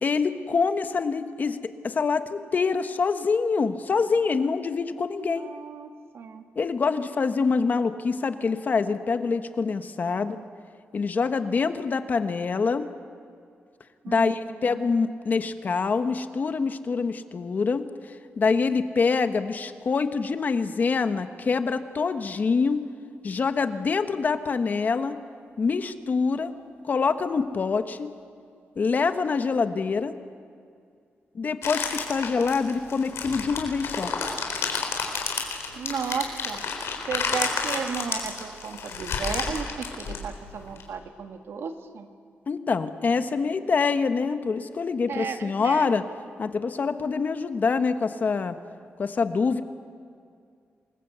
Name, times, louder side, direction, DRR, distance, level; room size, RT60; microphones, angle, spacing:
voice 1, 0.0-5.5 6.6-10.4 10.9-12.9 14.1-22.8 23.2-25.2 25.6-26.5 26.8-28.1 28.8-30.1 31.3-34.1 42.5-46.0 46.4-48.6 49.0-49.6, left 4 dB, 45° left, 9 dB, 1.2 m, -25 dB
voice 2, 5.1-6.5 10.0-10.5 14.0-14.9 35.7-42.1 45.1-45.9, right 6 dB, 70° right, 6 dB, 2.0 m, -34 dB
sound 1, 31.6-40.8, left 5 dB, 90° left, 3.9 m, -31 dB
27.5 x 21.0 x 8.1 m, 2.2 s
wide cardioid pair, 150°, 4 cm